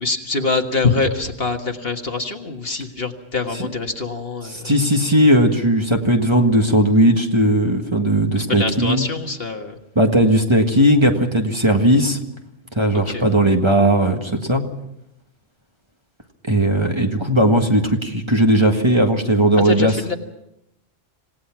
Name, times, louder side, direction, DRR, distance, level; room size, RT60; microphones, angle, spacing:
voice 1, 0.0-4.7 8.4-9.8 12.9-13.2 19.6-20.2, left 4 dB, 50° left, 5 dB, 1.8 m, -24 dB
voice 2, 4.5-9.1 10.0-12.2 12.8-14.6 16.5-19.9, right 1 dB, 20° right, 3 dB, 1.8 m, -17 dB
27.0 x 18.0 x 6.0 m, 0.84 s
omnidirectional pair, 1.3 m